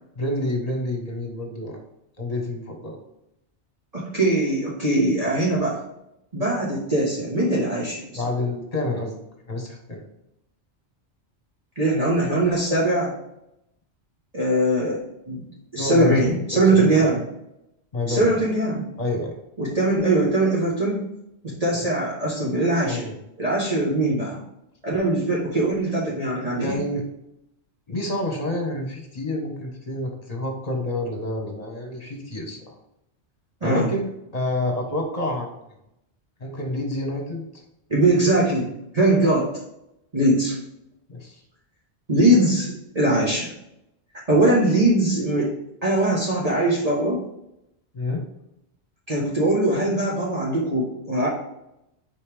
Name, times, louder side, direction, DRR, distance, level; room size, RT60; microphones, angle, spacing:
voice 1, 0.1-1.8 2.2-3.0 8.1-9.1 9.5-10.0 15.8-16.2 16.5-17.1 17.9-18.4 19.0-19.4 21.7-21.9 22.8-23.1 26.6-27.0 27.9-32.8 33.6-35.5 36.4-37.4 41.1-41.4 47.9-48.2, left 1 dB, 35° left, 1 dB, 1.6 m, -28 dB
voice 2, 3.9-5.8 6.3-8.2 11.7-13.1 14.3-15.4 15.7-17.2 18.1-18.8 19.6-21.0 21.4-23.1 23.4-24.4 24.8-26.7 33.6-33.9 37.9-39.5 40.1-40.6 42.1-43.5 44.3-45.5 45.8-47.2 49.1-51.3, right 1 dB, 35° right, -6 dB, 1.5 m, -21 dB
5.5 x 5.2 x 3.5 m, 0.83 s
omnidirectional pair, 1.2 m